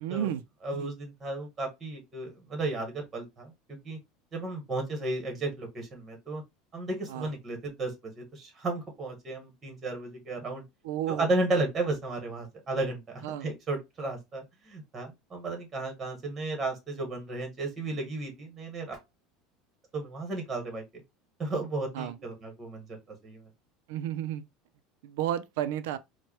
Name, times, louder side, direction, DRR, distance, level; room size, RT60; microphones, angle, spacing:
voice 1, 0.0-0.4 0.8-0.9 7.1-7.3 10.8-11.3 13.2-13.5 21.9-22.2 23.9-24.4 25.0-26.0, right 11 dB, 85° right, 0.4 m, -32 dB
voice 2, 0.6-4.0 4.3-6.4 6.7-10.6 11.1-19.0 19.9-20.8 21.4-22.8 23.2-23.4, right 2 dB, 20° right, 1.3 m, -34 dB
4.5 x 2.2 x 3.0 m
cardioid pair, 155°, 0 cm